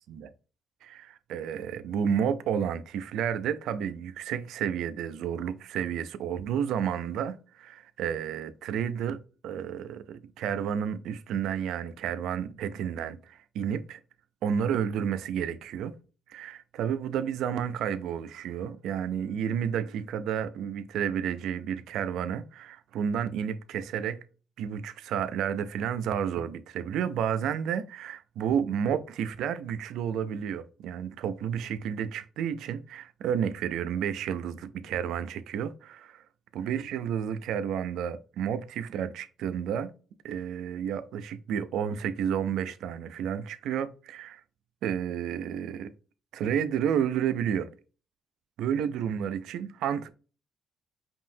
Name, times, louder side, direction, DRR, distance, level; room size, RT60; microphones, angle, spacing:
voice 1, 0.8-9.2 9.4-14.0 14.4-15.9 16.3-24.2 24.6-36.2 36.5-39.9 40.2-44.4 44.8-45.9 46.3-47.7 48.6-50.1, right 8 dB, 85° right, 0.4 m, -31 dB
5.3 x 2.7 x 2.7 m
cardioid pair, 90°, 0 cm